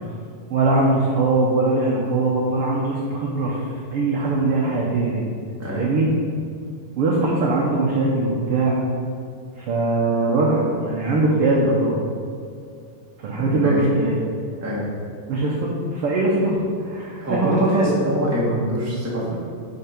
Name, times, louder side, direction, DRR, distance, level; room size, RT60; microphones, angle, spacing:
voice 1, 0.5-3.6 3.9-5.3 5.7-6.1 7.0-8.8 9.6-12.0 13.2-14.1 15.3-17.9, right 2 dB, 80° right, -3 dB, 1.3 m, -21 dB
voice 2, 13.3-13.8 14.6-14.8 17.2-19.4, equal, 10° right, -6 dB, 0.8 m, -24 dB
10.0 x 4.5 x 4.4 m, 2.3 s
omnidirectional pair, 3.7 m